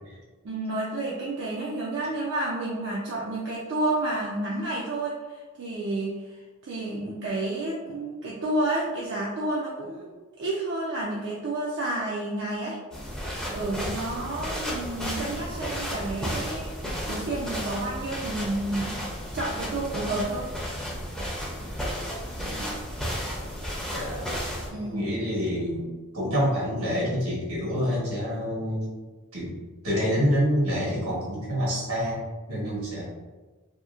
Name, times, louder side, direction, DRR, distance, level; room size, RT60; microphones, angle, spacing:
voice 1, 0.4-10.1 10.4-12.8 13.5-16.7 17.1-19.0 19.3-20.5 24.7-25.1, right 2 dB, 55° right, -5 dB, 0.4 m, -30 dB
sound 1, 12.9-24.7, equal, 5° left, 0.5 m, -33 dB
voice 2, 22.4-22.7 23.9-24.3 24.8-25.9 26.1-28.9 29.3-29.6 29.8-32.2 32.5-33.0, equal, 75° right, -5 dB, 1.2 m, -27 dB
2.8 x 2.7 x 2.4 m, 1.3 s
head